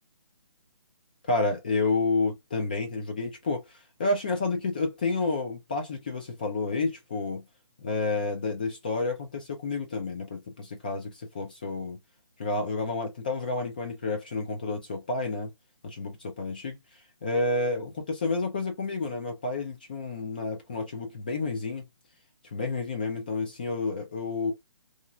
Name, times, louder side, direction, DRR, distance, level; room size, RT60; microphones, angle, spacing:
voice 1, 1.2-7.4 7.8-12.0 12.4-15.5 15.8-16.8 17.2-21.8 22.5-24.5, left 3 dB, 20° left, 0.3 m, -30 dB
3.0 x 2.4 x 2.3 m
hypercardioid pair, 160°, 16 cm